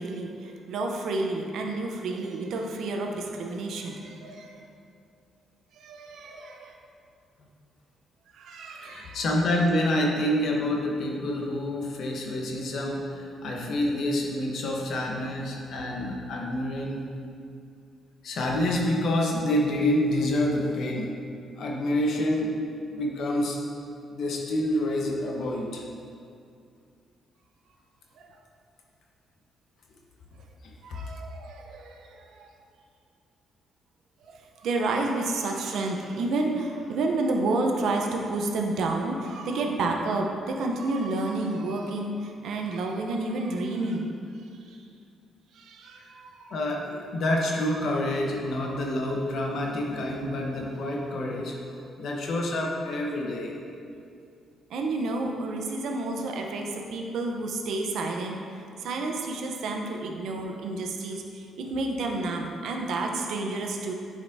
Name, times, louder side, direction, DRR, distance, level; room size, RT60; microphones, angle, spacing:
voice 1, 0.0-4.6 5.7-6.8 8.3-9.2 28.2-28.4 30.8-32.5 34.3-44.1 44.7-44.8 45.5-46.6 48.6-48.7 49.0-49.1 54.7-63.9, right 2 dB, 75° right, 2 dB, 0.7 m, -30 dB
voice 2, 8.8-17.1 18.2-21.1 21.6-22.6 22.9-23.6 24.1-25.8 46.5-51.5 52.0-53.6, left 1 dB, 65° left, -1 dB, 1.0 m, -27 dB
8.5 x 5.1 x 2.7 m, 2.4 s
cardioid pair, 90°, 0 cm